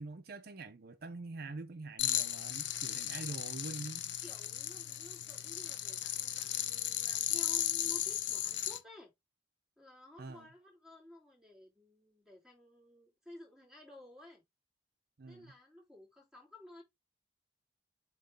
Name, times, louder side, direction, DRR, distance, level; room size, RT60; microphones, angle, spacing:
voice 1, 0.0-4.1 10.2-10.5 15.2-15.5, right 3 dB, 55° right, 0.7 m, -45 dB
sound 1, 2.0-8.8, left 11 dB, 75° left, 0.9 m, -36 dB
voice 2, 4.2-9.1 9.8-14.4 15.2-16.8, left 1 dB, 5° right, 3.2 m, -54 dB
7.7 x 3.0 x 5.5 m
head